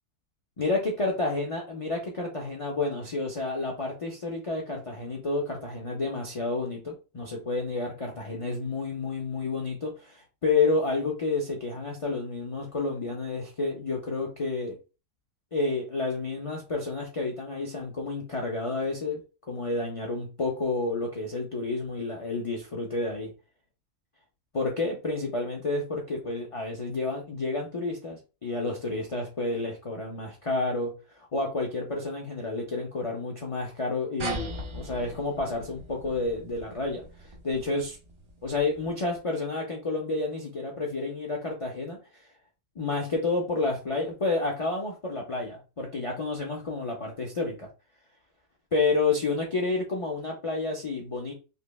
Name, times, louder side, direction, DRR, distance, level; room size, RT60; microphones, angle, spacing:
voice 1, 0.6-14.8 15.5-19.2 19.5-23.3 24.5-37.0 37.4-38.0 38.4-42.0 42.8-47.7 48.7-51.3, left 3 dB, 55° left, -1 dB, 0.3 m, -30 dB
sound 1, 34.2-39.1, right 1 dB, 45° right, 0.4 m, -40 dB
5.4 x 2.1 x 2.3 m, 0.32 s
omnidirectional pair, 1.5 m